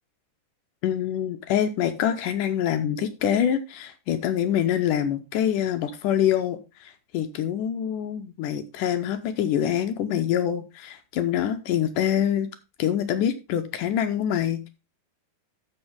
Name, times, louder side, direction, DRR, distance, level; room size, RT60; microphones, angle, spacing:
voice 1, 0.8-12.5 12.8-14.7, left 10 dB, 80° left, 8 dB, 2.1 m, -25 dB
14.0 x 5.4 x 3.6 m, 0.27 s
omnidirectional pair, 4.0 m